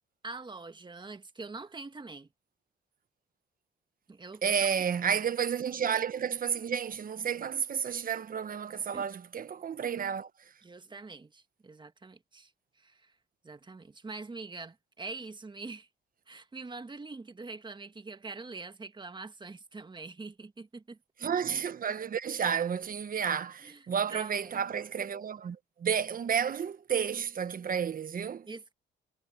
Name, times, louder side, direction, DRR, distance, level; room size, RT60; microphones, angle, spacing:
voice 1, 0.2-2.3 4.1-4.4 4.9-5.0 8.9-9.1 10.6-12.5 12.8-13.1 13.4-15.9 16.3-21.0 23.6-23.8 24.1-24.5 28.5-28.7, right 3 dB, 25° right, 1.5 m, -44 dB
voice 2, 4.4-10.3 21.2-28.5, right 7 dB, 45° right, 1.1 m, -31 dB
cardioid pair, 90°, 20 cm